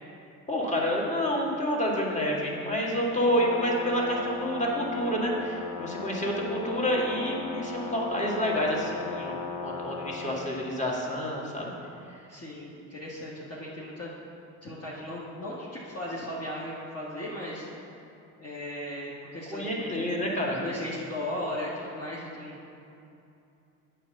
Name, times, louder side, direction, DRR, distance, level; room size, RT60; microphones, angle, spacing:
voice 1, 0.5-9.3 9.6-11.7 19.5-20.6, equal, 15° left, -3 dB, 2.1 m, -28 dB
Brass instrument, 3.2-10.3, left 5 dB, 80° left, 0.9 m, -37 dB
voice 2, 12.3-14.1 14.6-17.7 18.4-19.6 19.9-20.1 20.4-22.6, left 1 dB, 30° left, -6 dB, 1.6 m, -37 dB
8.5 x 5.0 x 6.5 m, 2.7 s
hypercardioid pair, 50°, 46 cm